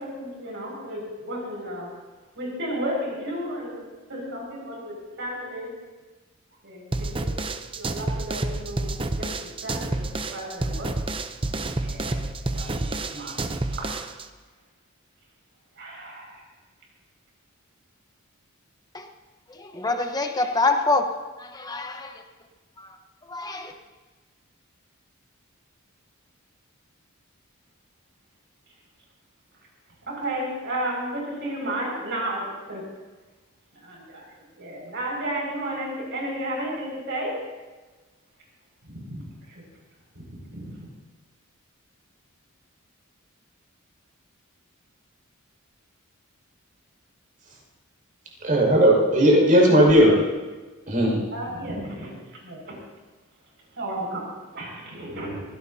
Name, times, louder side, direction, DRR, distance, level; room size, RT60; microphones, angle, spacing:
voice 1, 0.0-1.9 2.4-4.9 5.2-5.8 6.6-10.9 11.8-12.2 12.5-13.4 13.8-14.0 15.8-16.3 30.1-32.9 33.8-34.2 34.6-37.4 39.0-39.2 40.5-40.7 51.3-52.1 52.4-52.8 53.8-54.3 54.5-55.4, right 1 dB, 60° right, -1 dB, 6.0 m, -33 dB
sound 1, 6.9-14.3, right 2 dB, 25° right, 0.7 m, -29 dB
voice 2, 19.5-22.2 22.8-23.0 23.3-23.7, left 3 dB, 20° left, 5 dB, 1.1 m, -26 dB
voice 3, 48.4-50.1 50.9-51.2, equal, 40° right, -1 dB, 5.7 m, -16 dB
23.0 x 17.0 x 2.8 m, 1.3 s
head